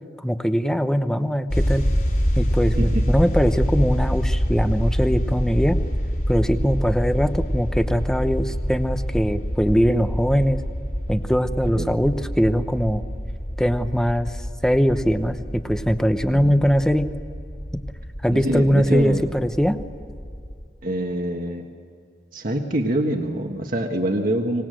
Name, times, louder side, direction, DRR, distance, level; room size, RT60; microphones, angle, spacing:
voice 1, 0.2-1.9 2.3-5.8 6.3-10.6 11.1-13.0 13.6-17.1 17.7-17.8 18.2-19.8, equal, 5° left, 9 dB, 0.8 m, -21 dB
sound 1, 1.5-20.7, equal, 50° left, 6.3 m, -26 dB
voice 2, 18.3-19.3 20.8-21.7 22.3-24.6, right 1 dB, 50° right, 2 dB, 1.5 m, -25 dB
25.0 x 19.0 x 7.7 m, 2.3 s
head